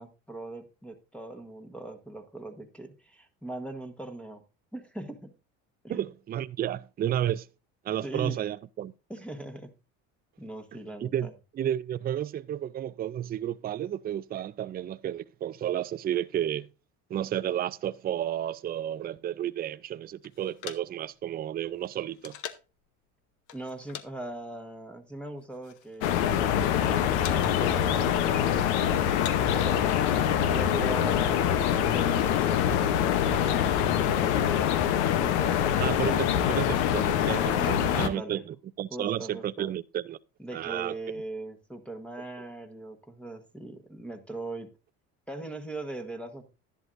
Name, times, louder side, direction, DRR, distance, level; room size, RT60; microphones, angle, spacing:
voice 1, 0.0-4.4 4.7-5.3 5.8-6.1 8.0-8.4 9.1-9.7 10.4-11.3 23.5-28.5 28.8-29.9 30.5-34.2 35.2-36.1 37.5-38.4 38.9-39.7 40.4-44.7 45.3-46.5, right 2 dB, 5° left, 1.2 m, -40 dB
voice 2, 5.9-7.5 7.8-8.9 11.0-11.3 11.5-16.7 17.1-22.4 35.8-40.2 40.5-41.0, right 11 dB, 30° right, 0.4 m, -32 dB
sound 1, 20.2-22.8 23.5-24.1 24.3-24.6 25.2-26.0 26.3-26.8 27.2-27.7 28.0-28.6 29.0-30.3 30.5-30.6 30.8-31.2 31.7-33.6, left 11 dB, 65° left, 1.0 m, -44 dB
sound 2, 26.0-38.1, left 9 dB, 90° left, 0.9 m, -25 dB
11.5 x 10.5 x 2.5 m
supercardioid pair, 85°, 33 cm